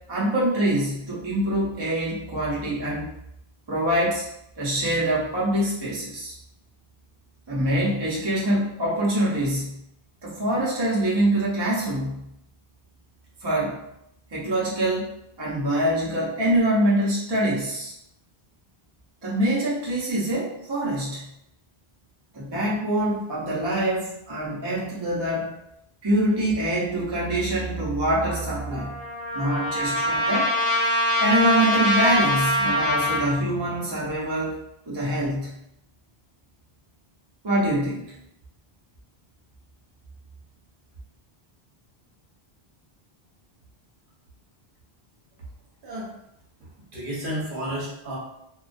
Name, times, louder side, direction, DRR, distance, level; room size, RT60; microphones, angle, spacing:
voice 1, 0.1-3.1 3.7-4.3 4.6-6.3 7.5-9.7 10.2-12.2 13.4-13.8 14.3-15.1 15.4-17.9 19.2-21.2 22.3-25.6 26.0-28.9 29.3-30.5 31.2-34.6 34.9-35.5 37.4-38.0, right 1 dB, 30° right, -6 dB, 0.5 m, -24 dB
Trumpet, 28.3-33.4, left 1 dB, 50° left, 0.5 m, -24 dB
voice 2, 45.8-46.1 46.6-48.2, equal, 60° right, -4 dB, 0.9 m, -32 dB
2.3 x 2.2 x 2.4 m, 0.80 s
omnidirectional pair, 1.0 m